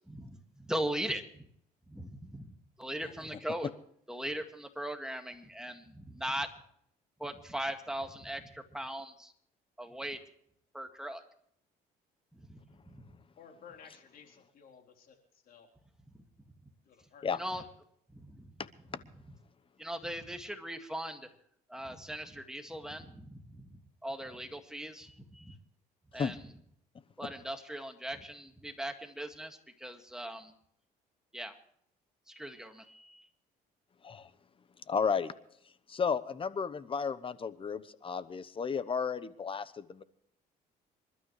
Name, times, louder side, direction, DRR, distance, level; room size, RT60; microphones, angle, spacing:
voice 1, 0.1-1.5 1.9-2.5 2.8-3.7 4.1-6.5 7.2-9.3 9.8-10.2 10.7-11.2 12.5-12.6 17.4-17.6 18.1-18.5 19.8-21.3 21.7-25.5 26.1-26.4 27.2-30.5 31.3-31.5 32.3-33.3, right 1 dB, 5° right, 5 dB, 2.0 m, -39 dB
voice 2, 13.4-15.2 15.5-15.7 16.9-17.7, left 7 dB, 60° left, 3 dB, 3.8 m, -55 dB
voice 3, 34.9-35.3 35.9-40.0, left 6 dB, 30° left, 15 dB, 1.0 m, -33 dB
27.0 x 12.5 x 3.2 m, 0.70 s
cardioid pair, 110°, 17 cm